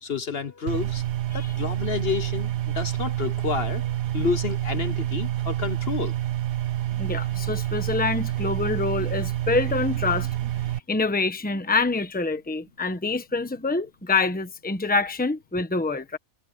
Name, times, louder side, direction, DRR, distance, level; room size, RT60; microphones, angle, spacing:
voice 1, 0.0-1.0 1.3-6.1, left 5 dB, 50° left, 1.0 m, -30 dB
sound 1, 0.7-10.8, right 13 dB, 80° right, 1.3 m, -28 dB
voice 2, 7.0-10.3 10.9-16.2, left 3 dB, 5° left, 1.1 m, -26 dB
omnidirectional pair, 1.5 m